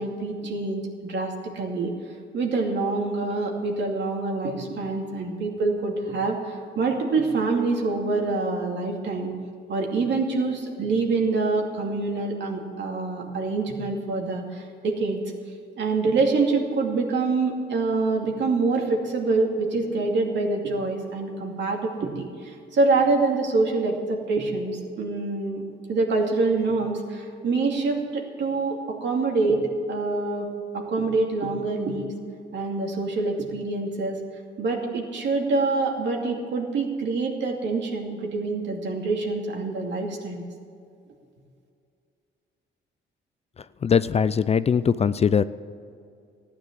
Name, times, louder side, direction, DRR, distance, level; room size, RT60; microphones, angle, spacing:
voice 1, 0.0-1.9 2.3-9.3 9.7-15.2 15.8-25.6 25.9-29.6 29.9-32.1 32.5-34.2 34.6-40.4, right 3 dB, 65° right, 1 dB, 2.6 m, -26 dB
voice 2, 43.8-45.4, left 6 dB, 30° left, 15 dB, 0.4 m, -21 dB
14.0 x 9.8 x 7.5 m, 2.4 s
cardioid pair, 90°, 20 cm